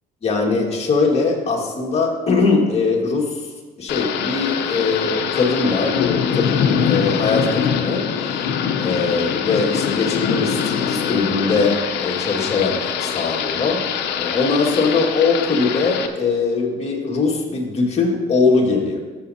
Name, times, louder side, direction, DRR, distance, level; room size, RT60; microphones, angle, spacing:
voice 1, 0.2-3.5 3.8-8.4 8.8-19.0, left 4 dB, 40° left, -1 dB, 1.9 m, -21 dB
Thunder / Rain, 3.9-16.1, left 7 dB, 85° left, 0.8 m, -23 dB
14.5 x 7.3 x 2.8 m, 1.3 s
cardioid pair, 110°, 17 cm